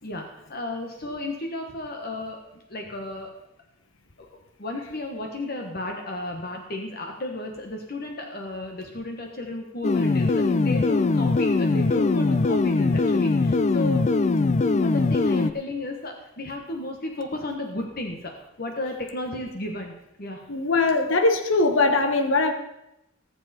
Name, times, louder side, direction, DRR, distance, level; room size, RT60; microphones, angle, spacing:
voice 1, 0.0-3.3 4.2-4.3 4.6-14.0 14.7-20.5, left 2 dB, 50° left, 2 dB, 1.3 m, -34 dB
sound 1, 9.8-15.5, left 3 dB, 35° left, 0.4 m, -21 dB
voice 2, 20.5-22.5, left 3 dB, 85° left, 7 dB, 1.1 m, -21 dB
19.0 x 7.6 x 4.3 m, 0.88 s
head